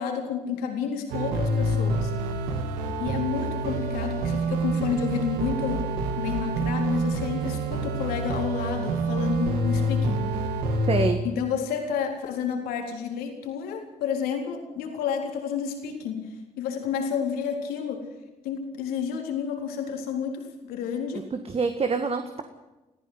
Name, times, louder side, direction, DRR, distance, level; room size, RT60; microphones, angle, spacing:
voice 1, 0.0-2.1 3.0-5.9 6.2-10.3 11.2-18.1 18.4-21.3, left 7 dB, 85° left, 3 dB, 3.9 m, -30 dB
sound 1, 1.1-11.1, right 2 dB, 90° right, 2.1 m, -27 dB
voice 2, 10.9-11.2 21.3-22.4, right 4 dB, 40° right, 7 dB, 1.8 m, -26 dB
24.0 x 14.5 x 8.1 m, 1.1 s
supercardioid pair, 60°, 15 cm